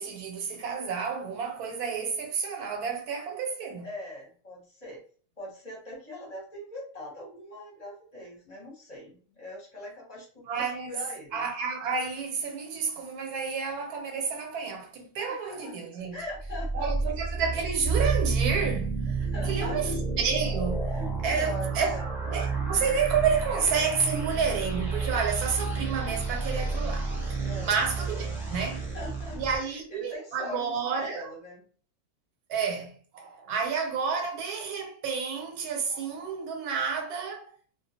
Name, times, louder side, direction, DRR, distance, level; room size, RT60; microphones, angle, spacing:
voice 1, 0.0-3.9 10.4-11.0 11.3-16.2 16.7-19.9 20.2-20.9 21.2-22.0 22.3-28.8 29.3-31.3 32.5-37.5, right 6 dB, 90° right, 1.1 m, -30 dB
voice 2, 3.8-5.0 5.4-11.4 15.3-15.7 16.1-17.1 19.2-19.9 20.9-22.0 27.5-27.8 28.7-31.6 33.5-33.6, left 1 dB, 35° left, 0.8 m, -41 dB
sound 1, 16.3-29.6, right 4 dB, 5° right, 0.4 m, -30 dB
2.4 x 2.2 x 2.7 m
omnidirectional pair, 1.6 m